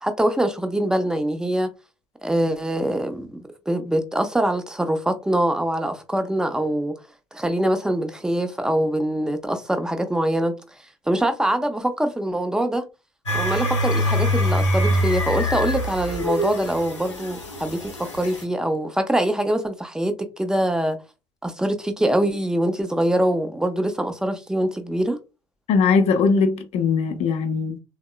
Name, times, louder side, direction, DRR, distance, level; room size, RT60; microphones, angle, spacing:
voice 1, 0.0-1.7 2.2-3.4 3.7-7.0 7.3-10.6 11.1-12.9 13.3-21.0 21.4-25.2, right 1 dB, 5° right, 0.5 m, -23 dB
sound 1, 13.3-18.4, left 1 dB, 85° left, 0.7 m, -24 dB
voice 2, 25.7-27.8, left 5 dB, 45° left, 0.6 m, -20 dB
3.5 x 2.1 x 2.3 m
figure-of-eight pair, 60°, 15 cm